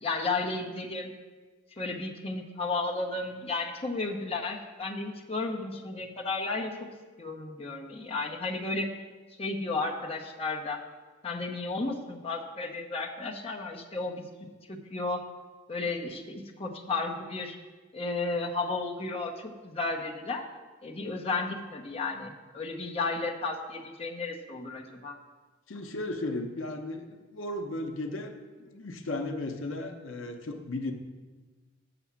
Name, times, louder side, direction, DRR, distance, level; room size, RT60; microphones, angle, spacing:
voice 1, 0.0-1.1 1.7-6.9 7.2-8.9 9.4-10.8 11.2-14.2 14.7-15.3 15.7-17.6 17.9-20.5 20.8-25.2, left 3 dB, 30° left, 0 dB, 0.8 m, -33 dB
voice 2, 25.7-28.3 28.6-30.9, left 2 dB, 75° left, 5 dB, 0.7 m, -35 dB
7.0 x 5.9 x 7.2 m, 1.3 s
head